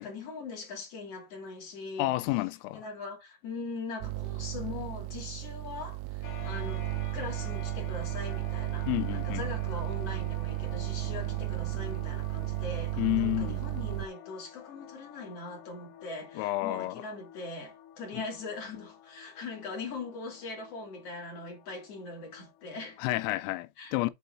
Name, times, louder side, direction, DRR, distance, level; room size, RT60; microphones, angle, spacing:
voice 1, 0.0-2.1 2.7-6.9 7.1-23.1 23.8-24.0, left 3 dB, 40° left, 2.9 m, -41 dB
voice 2, 2.0-2.8 8.9-9.5 13.0-13.6 16.4-17.0 18.2-18.3 23.0-24.1, left 19 dB, 85° left, 3.3 m, -30 dB
sound 1, 4.0-14.1, right 20 dB, 85° right, 3.1 m, -34 dB
sound 2, 6.2-23.5, left 9 dB, 60° left, 4.2 m, -50 dB
8.3 x 3.9 x 3.8 m
omnidirectional pair, 5.9 m